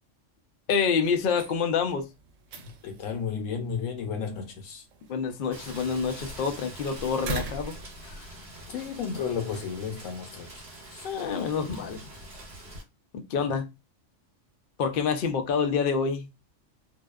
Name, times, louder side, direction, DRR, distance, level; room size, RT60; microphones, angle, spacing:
voice 1, 0.7-2.1 5.1-8.3 11.0-12.0 13.3-13.7 14.8-16.3, left 6 dB, 60° left, 0.6 m, -27 dB
sound 1, 1.2-8.7, right 5 dB, 80° right, 0.9 m, -43 dB
voice 2, 2.8-4.8 8.7-10.5 10.9-11.0, left 6 dB, 90° left, 1.0 m, -33 dB
Rain, 5.5-12.8, right 1 dB, 55° right, 1.3 m, -44 dB
2.7 x 2.1 x 2.3 m
omnidirectional pair, 1.3 m